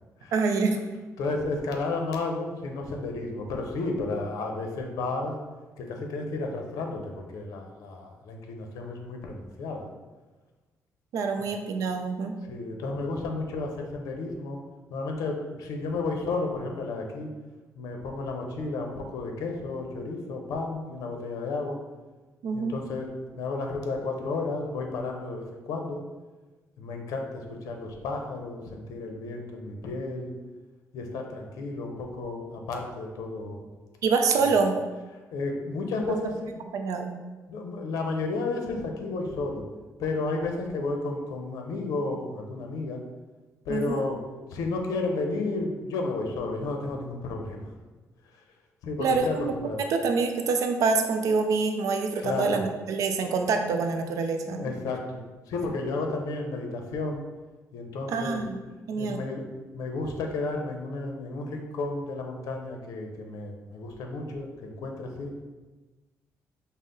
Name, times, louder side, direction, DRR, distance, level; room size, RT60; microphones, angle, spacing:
voice 1, 0.3-0.8 11.1-12.4 22.4-22.7 34.0-34.8 36.1-36.2 36.7-37.1 43.7-44.0 49.0-49.5 49.8-54.7 58.1-58.6 58.9-59.2, right 4 dB, 70° right, 5 dB, 0.5 m, -26 dB
voice 2, 1.2-5.3 5.8-9.9 11.4-11.5 12.5-14.6 14.9-17.3 17.8-21.8 22.5-23.1 23.3-26.0 26.8-30.3 30.9-33.6 34.4-34.5 35.3-36.5 37.5-39.7 40.0-43.0 43.7-44.2 44.5-47.7 48.3-48.4 48.8-49.8 52.2-52.6 54.6-57.2 57.7-58.4 59.0-59.5 59.7-65.3, left 3 dB, 85° left, 2 dB, 0.6 m, -32 dB
5.4 x 2.0 x 3.8 m, 1.2 s
cardioid pair, 140°, 6 cm